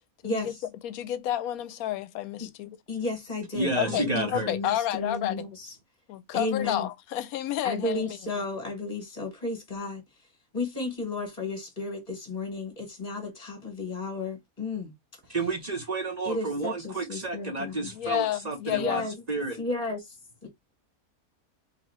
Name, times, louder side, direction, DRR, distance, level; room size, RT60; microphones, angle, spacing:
voice 1, 0.2-0.6 2.4-2.5 2.9-5.7 6.3-6.9 7.6-10.0 10.5-14.9 16.2-17.9 18.7-19.1 19.6-20.1 20.4-20.5, left 3 dB, 30° left, 1.2 m, -33 dB
voice 2, 0.8-2.8 3.7-5.4 6.1-8.2 17.9-19.0, left 12 dB, 80° left, 1.0 m, -30 dB
voice 3, 3.5-4.5 15.3-19.0 19.3-19.6, right 3 dB, 45° right, 0.5 m, -31 dB
2.8 x 2.7 x 4.1 m
omnidirectional pair, 1.5 m